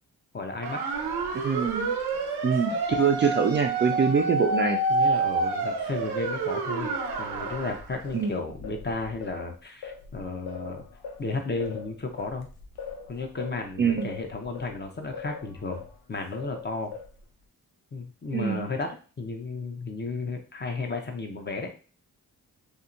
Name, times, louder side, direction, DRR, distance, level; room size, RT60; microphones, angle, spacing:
voice 1, 0.3-0.8 4.9-10.8 11.2-12.5 13.1-17.0 17.9-21.7, left 3 dB, 25° left, 3 dB, 0.7 m, -33 dB
sound 1, 0.6-7.8, right 3 dB, 75° right, 0.6 m, -28 dB
Singing, 0.9-5.3 5.7-16.0 16.3-17.3, left 5 dB, 70° left, 0.6 m, -43 dB
voice 2, 1.4-1.9 2.4-4.8 8.1-8.3 13.8-14.1 18.3-18.7, right 6 dB, 30° right, 3 dB, 0.4 m, -24 dB
2.7 x 2.1 x 2.5 m, 0.37 s
supercardioid pair, 45°, 40 cm